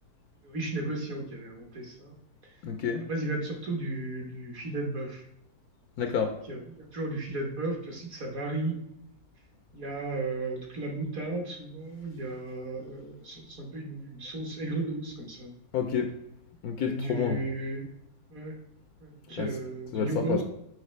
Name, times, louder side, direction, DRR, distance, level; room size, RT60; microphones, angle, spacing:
voice 1, 0.4-2.2 2.4-2.6 3.0-5.2 6.5-8.8 9.7-15.5 16.8-17.9 18.3-18.6 19.0-20.4, right 2 dB, 55° right, 0 dB, 1.4 m, -34 dB
voice 2, 2.6-3.0 6.0-6.3 15.7-16.1 16.6-17.4 19.4-19.5 19.9-20.4, left 6 dB, 70° left, 5 dB, 1.0 m, -29 dB
6.4 x 4.8 x 3.2 m, 0.79 s
omnidirectional pair, 1.9 m